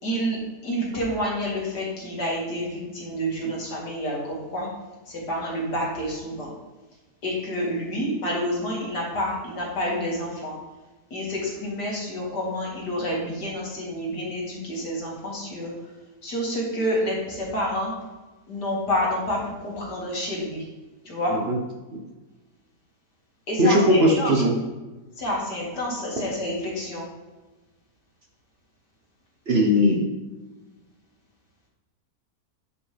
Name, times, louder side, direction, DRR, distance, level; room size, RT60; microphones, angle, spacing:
voice 1, 0.0-4.7 5.1-6.5 7.2-10.6 11.1-15.7 16.2-17.9 18.5-20.6 21.0-21.4 23.5-24.3 25.2-27.0, equal, 80° left, -4 dB, 2.7 m, -28 dB
voice 2, 23.6-24.5 29.5-30.1, equal, 45° right, 0 dB, 1.1 m, -19 dB
9.9 x 5.0 x 3.4 m, 1.2 s
omnidirectional pair, 1.8 m